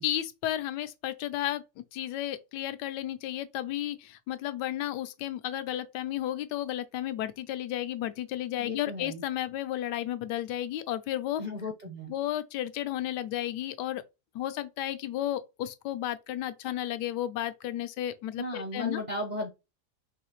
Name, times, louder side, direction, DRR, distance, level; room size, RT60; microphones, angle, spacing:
voice 1, 0.0-1.6 1.9-11.4 12.1-14.0 14.3-19.0, left 12 dB, 85° left, 1.2 m, -33 dB
voice 2, 8.6-9.2 11.4-12.1 18.4-19.5, left 2 dB, 40° right, 0.6 m, -35 dB
4.8 x 3.1 x 3.0 m
omnidirectional pair, 1.8 m